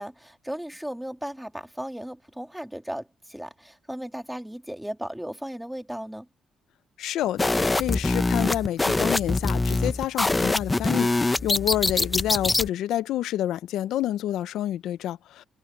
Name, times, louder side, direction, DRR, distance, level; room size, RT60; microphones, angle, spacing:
voice 1, 0.0-6.3, equal, 5° right, 2.9 m, -36 dB
voice 2, 7.0-15.4, left 13 dB, 85° left, 0.6 m, -28 dB
sound 1, 7.4-12.7, left 2 dB, 20° left, 0.7 m, -24 dB
cardioid pair, 90°, 0 cm